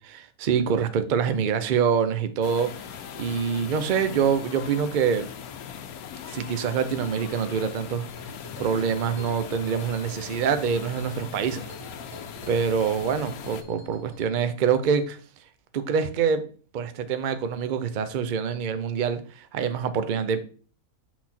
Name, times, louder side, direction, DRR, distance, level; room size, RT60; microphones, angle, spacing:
voice 1, 0.1-2.7 3.2-5.3 6.3-8.1 8.6-11.6 12.5-15.2 15.7-16.4 16.7-20.4, right 7 dB, 55° right, 0.5 m, -25 dB
sound 1, 2.4-13.6, left 9 dB, 80° left, 1.1 m, -40 dB
sound 2, 8.1-14.3, right 1 dB, 70° right, 1.9 m, -45 dB
6.0 x 4.2 x 4.2 m
omnidirectional pair, 1.5 m